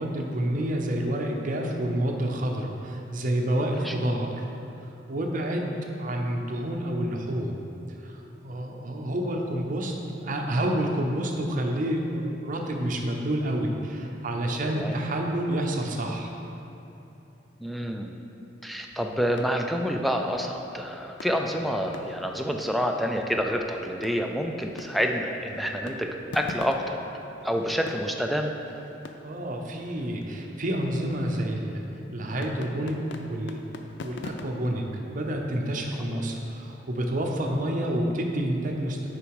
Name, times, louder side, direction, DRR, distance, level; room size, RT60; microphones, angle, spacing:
voice 1, 0.0-4.5 5.1-7.6 8.0-16.3 25.6-25.7 29.2-31.8 32.1-33.6 34.0-39.1, right 1 dB, 45° right, 1 dB, 0.7 m, -29 dB
voice 2, 17.6-18.1 18.6-26.1 26.3-27.0 27.4-28.5 36.2-36.3, equal, ahead, 2 dB, 0.4 m, -28 dB
sound 1, 18.7-36.5, left 3 dB, 65° left, 0.4 m, -46 dB
6.8 x 5.1 x 4.8 m, 2.9 s
head